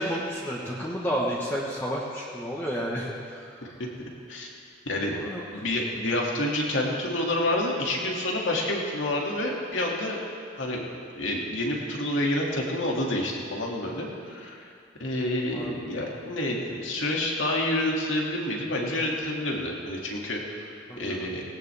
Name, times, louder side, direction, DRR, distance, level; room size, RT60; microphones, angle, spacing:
voice 1, 0.0-3.4 5.1-5.4 15.5-15.7 20.9-21.3, equal, 10° left, -5 dB, 1.3 m, -31 dB
voice 2, 4.9-5.2 5.5-10.2 10.5-10.8 11.2-14.7 15.0-20.7 21.0-21.4, left 1 dB, 90° left, -2 dB, 2.4 m, -28 dB
18.5 x 18.0 x 3.5 m, 2.4 s
head